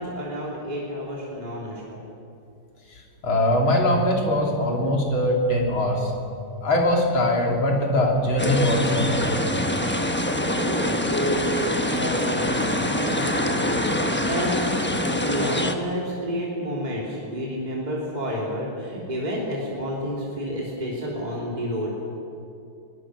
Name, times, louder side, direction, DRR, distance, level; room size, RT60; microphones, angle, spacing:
voice 1, 0.0-2.0 10.5-21.9, equal, 20° right, -4 dB, 3.1 m, -30 dB
voice 2, 2.9-6.1 6.6-9.6, left 1 dB, 70° left, -1 dB, 3.9 m, -22 dB
sound 1, 8.4-15.8, left 1 dB, 15° left, 0.4 m, -24 dB
22.5 x 19.0 x 6.3 m, 2.5 s
omnidirectional pair, 2.3 m